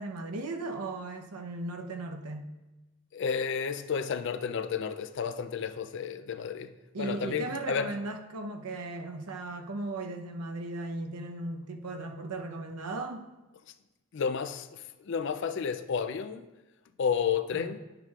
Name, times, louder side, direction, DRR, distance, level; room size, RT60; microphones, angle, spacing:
voice 1, 0.0-2.5 6.9-13.3 17.5-17.7, right 2 dB, 85° right, 0.7 m, -37 dB
voice 2, 3.1-8.0 14.1-16.5 17.0-17.8, left 6 dB, 55° left, 0.4 m, -32 dB
10.5 x 6.7 x 2.4 m
head